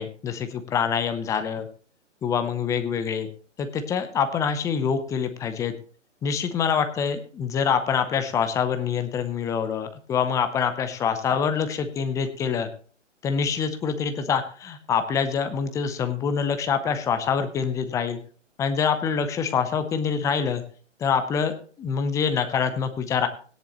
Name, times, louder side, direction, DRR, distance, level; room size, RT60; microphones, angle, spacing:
voice 1, 0.0-1.7 2.2-3.3 3.6-5.7 6.2-12.7 13.2-18.2 18.6-20.6 21.0-23.3, left 6 dB, 10° left, 8 dB, 0.6 m, -25 dB
16.5 x 10.5 x 3.0 m, 0.42 s
figure-of-eight pair, 130°, 38 cm